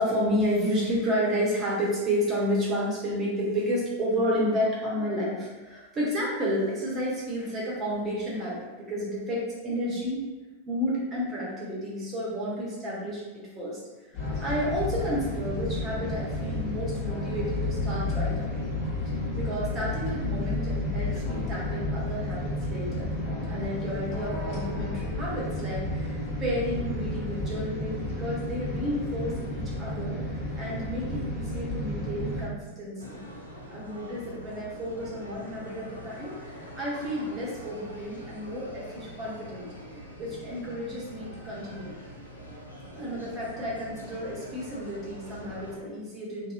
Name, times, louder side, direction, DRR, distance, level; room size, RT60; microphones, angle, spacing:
voice 1, 0.0-10.2 10.7-18.6 19.1-23.1 23.5-33.2 33.7-39.7 40.2-41.9 42.9-46.5, equal, 25° right, -6 dB, 0.9 m, -31 dB
sound 1, 14.1-32.5, left 2 dB, 40° left, 1.1 m, -31 dB
sound 2, 33.0-45.8, equal, 90° left, 0.4 m, -44 dB
2.8 x 2.2 x 2.4 m, 1.2 s
figure-of-eight pair, 90°, 0 cm